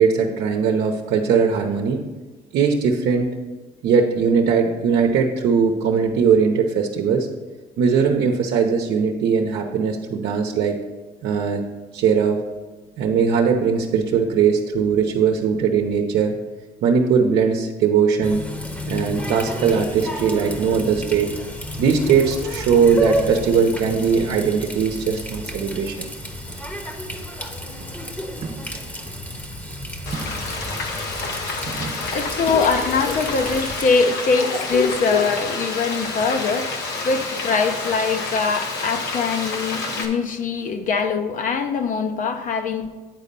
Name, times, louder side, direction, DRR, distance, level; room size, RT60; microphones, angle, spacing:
voice 1, 0.0-2.0 2.5-3.3 3.8-7.3 7.8-10.8 11.2-11.6 11.9-12.4 13.0-16.3 16.8-18.4 18.9-21.3 21.8-26.1, right 6 dB, 70° right, 2 dB, 0.8 m, -19 dB
Water tap faucet, 18.2-33.8, left 1 dB, 10° left, 0.9 m, -31 dB
sound 1, 23.5-23.8 24.1-25.2 25.5-26.8 27.0-27.4 27.8-28.0 28.4-32.4, right 4 dB, 40° right, 1.1 m, -40 dB
Frying (food), 30.1-40.1, left 3 dB, 85° left, 1.1 m, -29 dB
voice 2, 31.8-42.9, left 4 dB, 50° left, 6 dB, 0.7 m, -22 dB
9.1 x 4.1 x 5.3 m, 1.3 s
cardioid pair, 110°, 17 cm